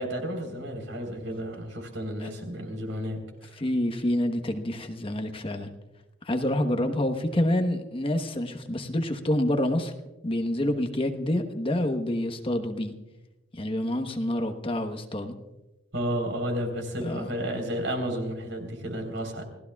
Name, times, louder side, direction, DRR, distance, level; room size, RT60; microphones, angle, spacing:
voice 1, 0.0-3.2 15.9-19.4, equal, 85° right, 3 dB, 3.9 m, -32 dB
voice 2, 3.6-5.7 6.2-9.9 10.2-12.9 13.5-15.3 17.0-17.3, left 1 dB, 30° left, 6 dB, 1.1 m, -27 dB
28.0 x 16.5 x 2.4 m, 1.0 s
head